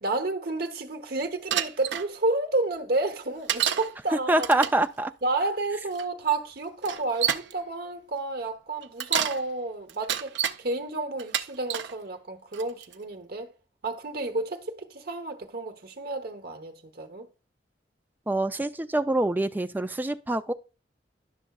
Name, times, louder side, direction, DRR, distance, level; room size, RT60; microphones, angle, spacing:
voice 1, 0.0-4.7 5.2-13.5 13.8-17.3, right 2 dB, 55° right, 1.0 m, -31 dB
Bicycle, 1.5-2.1 3.5-3.9 4.4-4.8 5.9-6.0 6.8-7.5 8.8-9.4 9.9-10.6 11.2-11.9 12.5-12.9, right 9 dB, 80° right, 0.5 m, -28 dB
voice 2, 4.3-5.1 18.3-20.5, right 2 dB, 10° right, 0.4 m, -25 dB
11.0 x 6.2 x 2.3 m
head